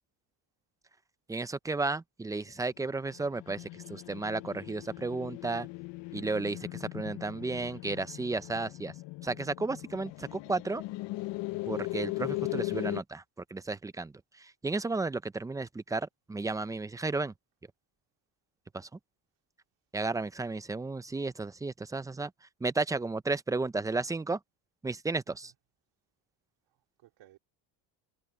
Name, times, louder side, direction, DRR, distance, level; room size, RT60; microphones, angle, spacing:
voice 1, 1.3-5.7 6.1-9.0 9.2-10.8 11.7-13.2 13.5-17.3 18.7-18.9 19.9-24.4 24.8-25.5, right 3 dB, 10° right, 0.3 m, -33 dB
sound 1, 3.0-13.0, left 20 dB, 65° left, 0.9 m, -38 dB
voice 2, 11.5-11.9 25.3-25.5 26.7-27.4, right 14 dB, 65° right, 3.3 m, -61 dB
cardioid pair, 140°, 47 cm